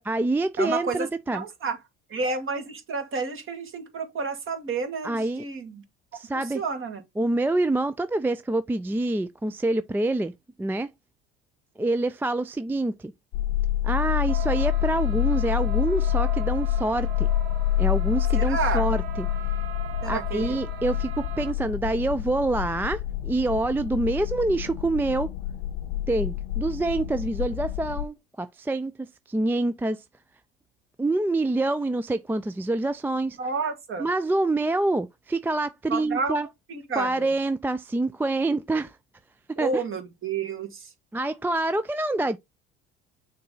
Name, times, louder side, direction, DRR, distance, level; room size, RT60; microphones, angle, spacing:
voice 1, 0.0-1.4 5.0-5.4 6.1-6.6 7.2-10.3 10.6-10.9 11.8-13.1 13.8-17.3 17.8-19.3 20.0-25.3 26.1-30.0 31.0-33.4 34.0-36.5 37.0-39.0 39.5-39.8 41.1-42.4, right 2 dB, 5° right, 0.4 m, -26 dB
voice 2, 0.6-1.8 2.1-5.8 6.3-7.0 18.3-18.9 20.0-20.6 33.4-34.1 35.9-36.4 36.7-37.3 39.6-40.9, right 4 dB, 40° right, 2.2 m, -30 dB
sound 1, 13.3-28.1, left 12 dB, 70° left, 0.7 m, -27 dB
sound 2, 14.3-21.5, right 11 dB, 70° right, 1.3 m, -40 dB
6.6 x 4.1 x 3.9 m
hypercardioid pair, 75°, 31 cm